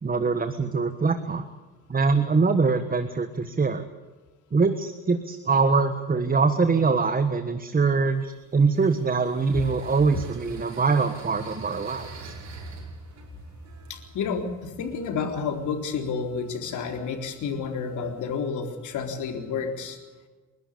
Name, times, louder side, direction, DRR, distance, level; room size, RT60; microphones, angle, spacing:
voice 1, 0.0-1.5 1.9-3.8 4.5-12.3, right 4 dB, 30° right, 9 dB, 1.5 m, -23 dB
sound 1, 8.1-18.5, right 3 dB, 65° right, 5.6 m, -46 dB
voice 2, 13.9-20.0, left 5 dB, 75° left, 4 dB, 4.0 m, -30 dB
29.5 x 12.5 x 8.6 m, 1.2 s
cardioid pair, 90°, 30 cm